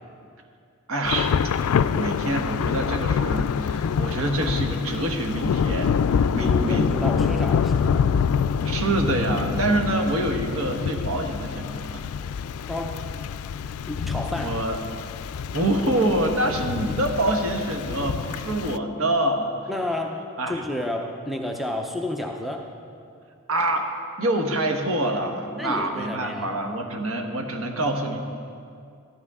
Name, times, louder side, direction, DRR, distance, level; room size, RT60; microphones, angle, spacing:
voice 1, 0.9-1.3 1.9-6.0 6.3-6.9 8.6-12.0 14.4-14.8 15.5-19.5 20.4-20.6 23.5-23.9 24.2-28.2, right 1 dB, 80° right, 4 dB, 1.3 m, -26 dB
Thunder / Rain, 1.0-18.8, left 6 dB, 90° left, 0.3 m, -26 dB
voice 2, 6.3-8.1 12.7-13.1 13.8-14.5 19.7-22.7 25.6-26.6, left 1 dB, ahead, 2 dB, 0.6 m, -31 dB
14.5 x 12.0 x 3.6 m, 2.3 s
head